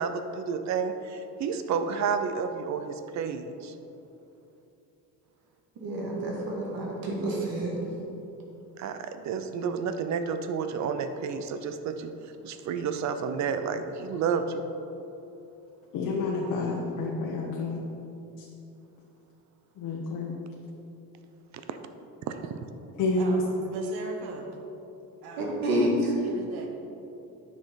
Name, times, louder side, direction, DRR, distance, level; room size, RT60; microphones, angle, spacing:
voice 1, 0.0-3.7 8.8-14.7 21.5-21.8 22.3-22.6, right 6 dB, 50° right, 8 dB, 0.6 m, -31 dB
voice 2, 5.8-7.8 25.4-26.2, right 1 dB, 65° right, -2 dB, 2.1 m, -28 dB
voice 3, 15.9-17.8 19.8-20.3 23.0-23.4, left 2 dB, 65° left, -2 dB, 1.1 m, -28 dB
voice 4, 23.2-24.5 25.2-26.8, right 4 dB, 85° right, 3 dB, 1.3 m, -41 dB
9.7 x 6.3 x 4.0 m, 2.9 s
cardioid pair, 145°, 37 cm